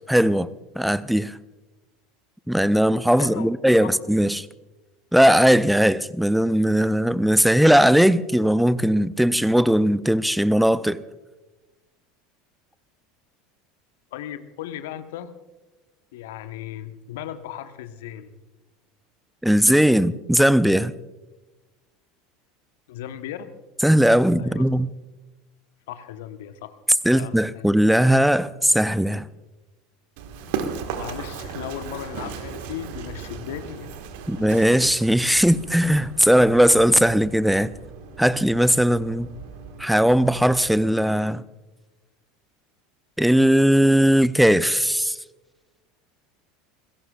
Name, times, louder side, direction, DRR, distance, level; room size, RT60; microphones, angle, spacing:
voice 1, 0.1-0.5 0.8-1.3 2.5-4.5 5.1-11.0 19.4-20.9 23.8-24.9 27.0-29.2 34.3-37.7 38.2-39.3 39.8-41.4 43.2-45.1, equal, ahead, 0.5 m, -18 dB
voice 2, 3.1-3.5 3.8-3.9 14.1-15.3 16.1-18.3 22.9-23.5 24.4-24.7 25.9-26.7 27.1-27.7 30.9-33.9 34.4-34.5, left 11 dB, 65° left, 1.1 m, -36 dB
Run, 30.2-40.7, right 6 dB, 60° right, 1.6 m, -37 dB
28.0 x 17.0 x 2.4 m
figure-of-eight pair, 75°, 0 cm